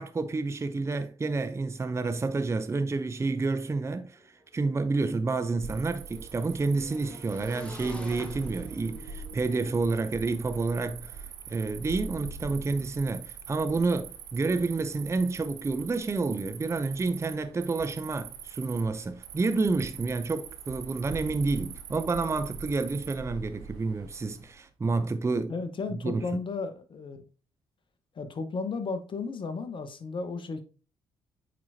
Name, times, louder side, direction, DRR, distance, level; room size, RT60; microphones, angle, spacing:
voice 1, 0.0-4.2 4.5-25.5 25.9-26.3, right 3 dB, 25° right, 0.6 m, -29 dB
Motorcycle / Engine, 3.8-3.9 4.1-11.2, right 1 dB, 10° left, 2.0 m, -47 dB
Cricket, 5.6-24.5, right 6 dB, 80° right, 0.8 m, -43 dB
voice 2, 25.5-27.2 28.1-30.6, left 4 dB, 45° left, 1.2 m, -34 dB
9.2 x 4.7 x 2.8 m
hypercardioid pair, 45°, 11 cm